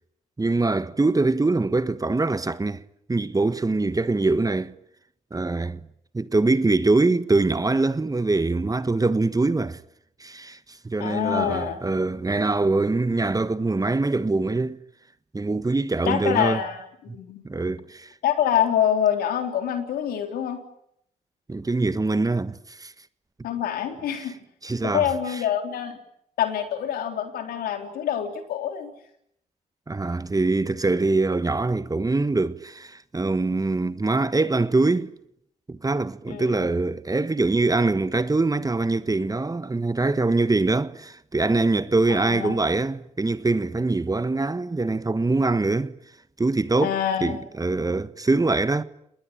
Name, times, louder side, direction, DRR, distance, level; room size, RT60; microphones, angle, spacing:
voice 1, 0.4-2.8 3.1-4.7 5.3-5.8 6.1-9.8 10.2-10.6 10.8-14.8 15.3-16.6 17.4-18.1 21.5-22.9 24.2-24.3 24.6-25.4 29.9-35.1 35.7-45.9 46.4-48.8, right 3 dB, 25° right, 1.4 m, -23 dB
voice 2, 11.0-11.8 16.1-16.8 17.1-17.4 18.2-20.6 23.4-24.3 24.8-26.0 26.4-28.9 36.3-36.7 42.1-42.6 46.8-47.4, left 10 dB, 70° left, 3.7 m, -26 dB
29.5 x 20.5 x 8.9 m
hypercardioid pair, 40°, 16 cm